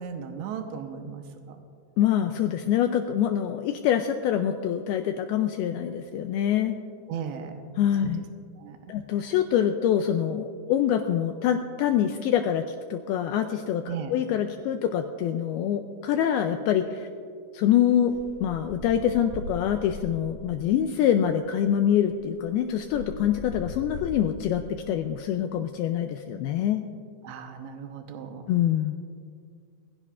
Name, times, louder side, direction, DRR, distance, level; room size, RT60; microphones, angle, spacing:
voice 1, 0.0-1.6 7.1-7.5 8.0-8.1 8.6-8.9 9.2-9.3 13.9-14.1 27.2-28.4, right 7 dB, 85° right, 5 dB, 3.1 m, -36 dB
voice 2, 2.0-6.8 7.8-8.2 8.9-17.1 17.5-24.6 24.9-26.8 28.5-29.0, left 10 dB, 85° left, 6 dB, 2.2 m, -25 dB
sound 1, 18.1-20.7 21.6-21.7 22.0-24.7, left 1 dB, 5° left, 3.7 m, -40 dB
22.0 x 16.0 x 2.5 m, 2.2 s
omnidirectional pair, 5.0 m